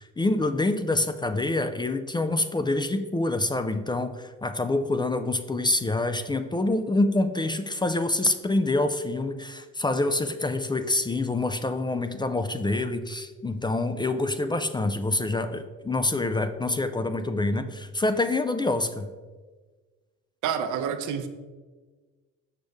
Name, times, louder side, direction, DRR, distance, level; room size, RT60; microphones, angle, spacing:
voice 1, 0.0-19.1, left 2 dB, 15° left, 9 dB, 0.3 m, -26 dB
voice 2, 20.4-21.3, right 7 dB, 80° right, 8 dB, 0.7 m, -28 dB
6.5 x 5.1 x 3.5 m, 1.3 s
cardioid pair, 90°, 30 cm